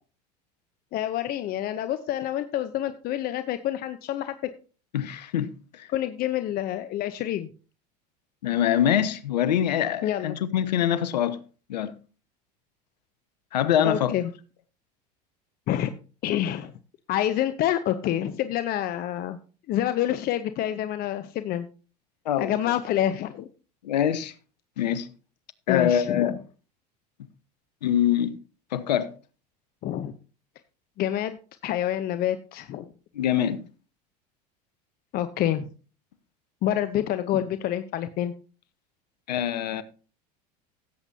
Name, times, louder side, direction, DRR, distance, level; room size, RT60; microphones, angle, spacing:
voice 1, 0.9-4.3 5.9-7.5 10.0-10.4 13.8-14.2 15.7-15.9 16.2-16.7 17.1-19.4 19.7-21.7 22.4-23.5 25.7-26.3 29.8-30.1 31.0-31.4 31.6-32.8 35.1-35.7 36.6-38.3, left 12 dB, 45° left, 0.8 m, -27 dB
voice 2, 4.9-5.9 8.4-11.4 11.7-11.9 13.5-14.1 22.2-22.6 23.8-24.3 24.8-25.1 25.7-26.4 27.8-28.4 28.7-29.1 33.1-33.6 39.3-39.8, left 10 dB, 85° left, 0.9 m, -24 dB
16.5 x 8.1 x 2.7 m
hypercardioid pair, 85°, 21 cm